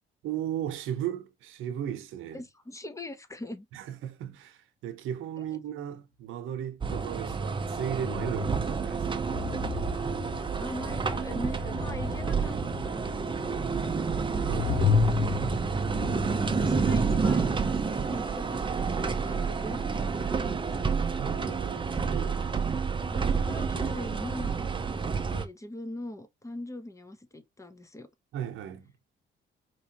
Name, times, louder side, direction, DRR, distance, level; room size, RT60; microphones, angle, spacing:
voice 1, 0.2-2.4 3.7-9.3 14.5-15.0 21.2-22.6 28.3-29.1, right 10 dB, 85° right, 0.8 m, -36 dB
voice 2, 2.3-3.7 5.4-5.5 10.6-12.5 12.8-14.9 16.3-21.0 22.6-22.7 23.1-28.1, left 1 dB, 15° left, 0.8 m, -42 dB
sound 1, 6.8-25.4, right 5 dB, 25° right, 0.7 m, -29 dB
sound 2, 7.6-17.2, left 6 dB, 45° left, 0.9 m, -33 dB
4.6 x 3.1 x 2.8 m
cardioid pair, 90°, 20 cm